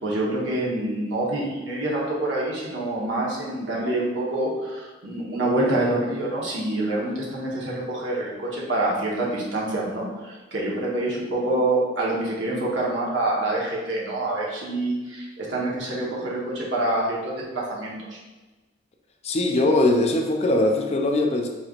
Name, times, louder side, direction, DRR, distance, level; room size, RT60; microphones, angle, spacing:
voice 1, 0.0-17.9, right 1 dB, 75° right, -5 dB, 1.1 m, -26 dB
voice 2, 19.2-21.5, left 2 dB, 35° left, 3 dB, 0.4 m, -21 dB
4.9 x 3.2 x 2.4 m, 1.2 s
head